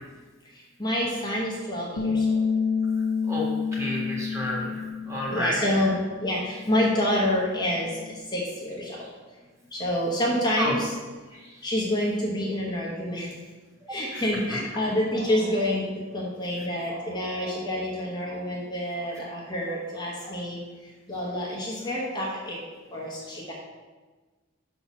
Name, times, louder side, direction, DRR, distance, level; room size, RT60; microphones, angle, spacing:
voice 1, 0.8-2.2 5.3-8.0 8.3-9.0 9.7-10.9 11.6-13.3 13.9-20.6 21.1-22.6 22.9-23.5, left 1 dB, 20° left, -5 dB, 1.0 m, -27 dB
Bass guitar, 2.0-8.2, left 5 dB, 70° left, 0.6 m, -29 dB
voice 2, 3.7-4.7 5.1-5.6 10.6-10.7 14.1-14.2, equal, 15° right, -4 dB, 1.6 m, -29 dB
5.8 x 4.2 x 6.0 m, 1.3 s
head